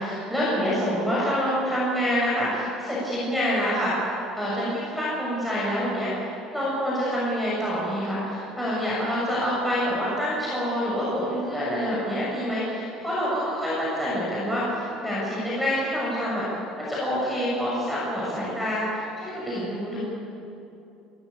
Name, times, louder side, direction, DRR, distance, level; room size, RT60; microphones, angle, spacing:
voice 1, 0.0-20.0, equal, ahead, -8 dB, 6.8 m, -27 dB
28.5 x 14.5 x 8.4 m, 2.7 s
cardioid pair, 145°, 0 cm